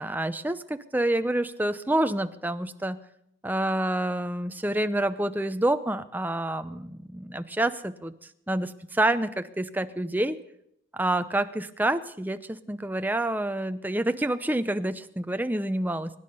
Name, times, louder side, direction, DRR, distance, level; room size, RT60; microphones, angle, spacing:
voice 1, 0.0-3.0 3.4-8.1 8.5-10.4 10.9-16.1, right 1 dB, 10° right, 10 dB, 0.6 m, -28 dB
23.5 x 10.5 x 5.5 m, 0.78 s
head